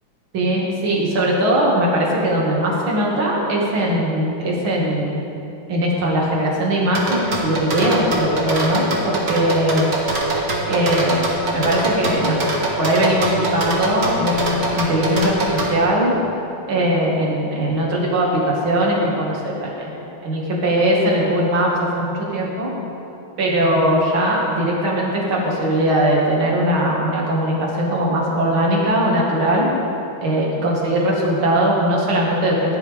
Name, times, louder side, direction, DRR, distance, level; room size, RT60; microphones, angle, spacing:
voice 1, 0.3-5.2 5.7-9.9 10.7-11.2 11.5-12.4 12.8-15.3 15.7-16.1 16.7-21.7 22.0-22.7 23.4-29.7 30.2-32.6, right 1 dB, 75° right, -3 dB, 2.9 m, -20 dB
sound 1, 6.9-15.7, right 2 dB, 45° right, 2.0 m, -23 dB
16.5 x 11.5 x 3.5 m, 2.9 s
omnidirectional pair, 2.3 m